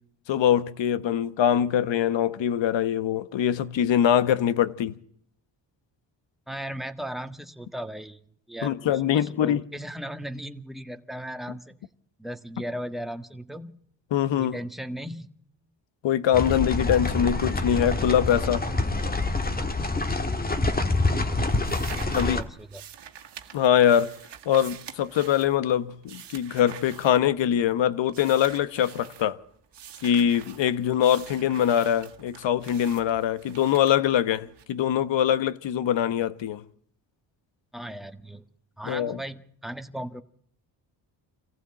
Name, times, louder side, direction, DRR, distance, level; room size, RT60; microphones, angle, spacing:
voice 1, 0.3-4.9 8.6-9.6 14.1-14.6 16.0-18.7 22.1-22.4 23.5-24.1 24.5-29.4 30.0-36.6 38.9-39.2, left 10 dB, 70° left, 1.2 m, -23 dB
voice 2, 6.5-8.2 8.5-11.8 12.2-13.8 14.4-15.3 21.9-22.8 37.7-38.5 38.8-40.2, right 1 dB, ahead, 1.5 m, -37 dB
sound 1, 16.3-22.4, left 2 dB, 20° left, 1.8 m, -26 dB
sound 2, 20.3-20.7 21.0-27.7 28.1-29.3 29.7-34.6, right 9 dB, 65° right, 1.9 m, -46 dB
25.5 x 15.0 x 8.9 m
cardioid pair, 70°, 45 cm